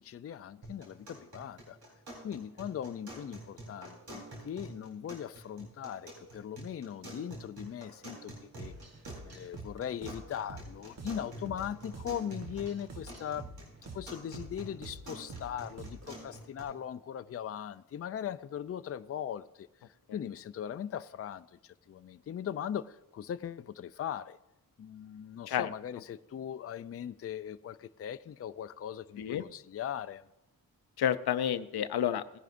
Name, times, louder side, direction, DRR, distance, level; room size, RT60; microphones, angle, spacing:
voice 1, 0.0-1.8 2.2-8.7 9.2-13.5 13.9-19.7 20.1-24.4 24.8-30.2, left 9 dB, 40° left, 0.4 m, -39 dB
sound 1, 0.6-16.6, right 1 dB, 85° right, 4.0 m, -49 dB
sound 2, 8.6-16.2, right 2 dB, 45° right, 1.2 m, -48 dB
voice 2, 31.0-32.4, left 9 dB, 85° left, 0.6 m, -30 dB
17.5 x 10.5 x 2.6 m
cardioid pair, 65°, 37 cm